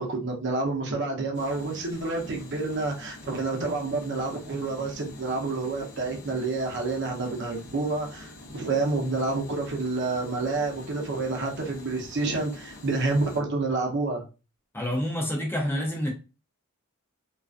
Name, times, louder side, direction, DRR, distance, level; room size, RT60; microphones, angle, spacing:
voice 1, 0.0-14.2, right 3 dB, 55° right, 0.7 m, -29 dB
sound 1, 1.3-13.4, left 2 dB, 55° left, 0.6 m, -46 dB
voice 2, 14.7-16.1, equal, 10° left, 0.5 m, -28 dB
2.4 x 2.3 x 2.4 m
head